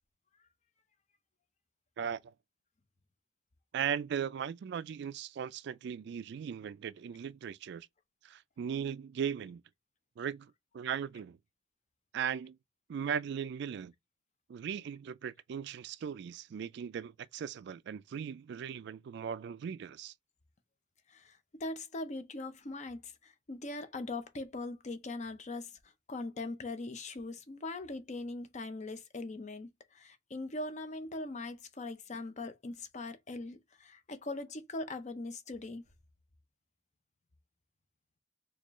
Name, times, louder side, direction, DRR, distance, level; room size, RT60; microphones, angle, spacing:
voice 1, 2.0-2.3 3.7-7.9 8.2-9.6 10.2-11.4 12.1-12.6 12.9-13.9 14.5-20.1, right 7 dB, 60° right, 0.3 m, -38 dB
voice 2, 21.1-35.8, left 2 dB, 40° left, 0.6 m, -41 dB
4.2 x 2.4 x 3.0 m
head